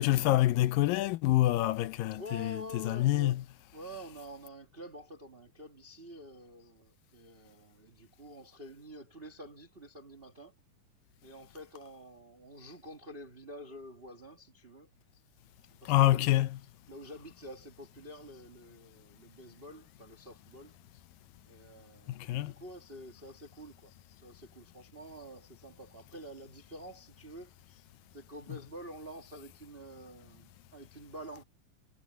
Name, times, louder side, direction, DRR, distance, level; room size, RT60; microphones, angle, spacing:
voice 1, 0.0-3.4 15.9-16.6 22.1-22.5, left 15 dB, 85° left, 2.5 m, -27 dB
voice 2, 2.1-3.4 3.7-10.5 11.2-14.9 15.6-16.4 16.9-20.7 21.5-27.8 28.1-31.4, equal, 40° right, 0.8 m, -48 dB
omnidirectional pair, 4.0 m